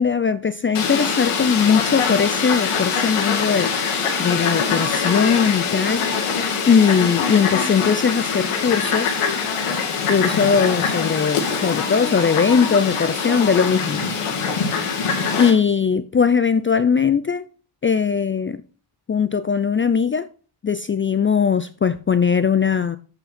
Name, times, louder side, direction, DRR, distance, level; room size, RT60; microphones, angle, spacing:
voice 1, 0.0-3.7 4.2-6.1 6.7-9.2 10.1-14.0 15.4-17.4 17.8-18.6 19.1-20.3 20.6-23.0, left 6 dB, 25° left, 0.4 m, -19 dB
Fowl, 0.7-15.5, left 5 dB, 80° left, 2.3 m, -23 dB
8.0 x 6.8 x 4.2 m
cardioid pair, 85°, 50 cm